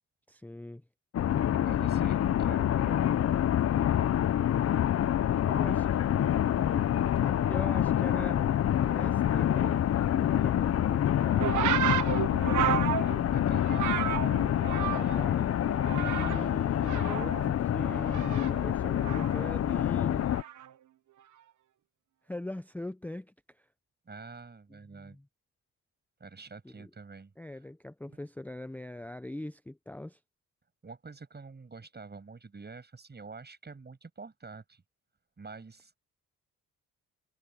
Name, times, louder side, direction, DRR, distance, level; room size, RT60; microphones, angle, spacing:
voice 1, 0.3-0.8 2.1-2.4 5.3-5.9 7.2-11.6 14.7-20.3 22.3-23.7 24.9-25.2 26.6-26.9 27.4-30.2, left 1 dB, 5° left, 0.7 m, -41 dB
sound 1, 1.1-20.4, left 11 dB, 50° left, 0.7 m, -27 dB
voice 2, 1.6-3.1 13.3-14.1 14.6-15.1 24.1-25.2 26.2-27.6 28.1-28.2 30.8-34.8 35.4-35.9, right 4 dB, 30° right, 7.4 m, -47 dB
sound 2, 11.4-15.3 15.6-16.5 16.8-19.5 20.3-20.7, right 11 dB, 65° right, 1.3 m, -32 dB
cardioid pair, 80°, 32 cm